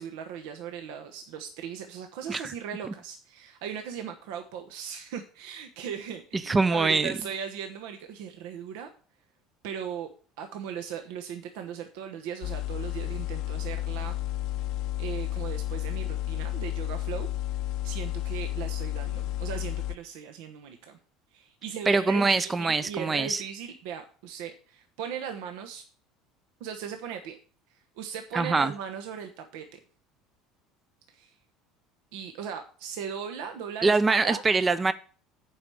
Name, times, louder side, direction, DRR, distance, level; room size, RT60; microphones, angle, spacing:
voice 1, 0.0-8.9 9.6-10.1 10.4-14.2 15.0-17.3 17.8-21.0 21.3-25.8 26.6-27.4 28.0-29.8 31.1-31.3 32.1-34.4, right 8 dB, 80° right, 6 dB, 1.0 m, -38 dB
voice 2, 6.3-7.1 21.9-23.4 28.3-28.7 33.8-34.9, right 3 dB, 15° right, 13 dB, 0.4 m, -24 dB
sound 1, 12.4-20.0, left 13 dB, 65° left, 0.6 m, -32 dB
8.6 x 5.0 x 6.9 m, 0.42 s
cardioid pair, 140°, 0 cm